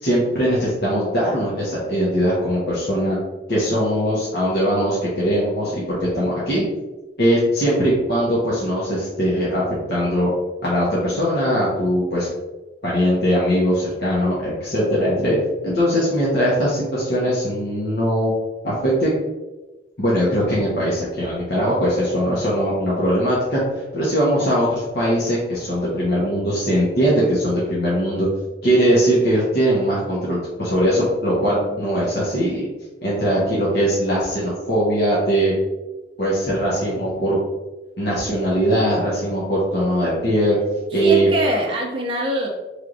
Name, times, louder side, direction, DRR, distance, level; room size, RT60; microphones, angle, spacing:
voice 1, 0.0-3.2 3.5-6.7 7.2-9.6 9.9-10.3 10.6-12.3 12.8-15.4 15.6-18.3 18.6-19.1 20.0-28.3 28.6-32.6 33.0-35.5 36.2-37.4 38.0-40.6 40.9-41.3, equal, 60° left, -8 dB, 1.1 m, -20 dB
voice 2, 31.4-31.8 40.9-42.5, equal, 30° right, -2 dB, 0.5 m, -24 dB
4.5 x 3.4 x 2.5 m, 1.1 s
head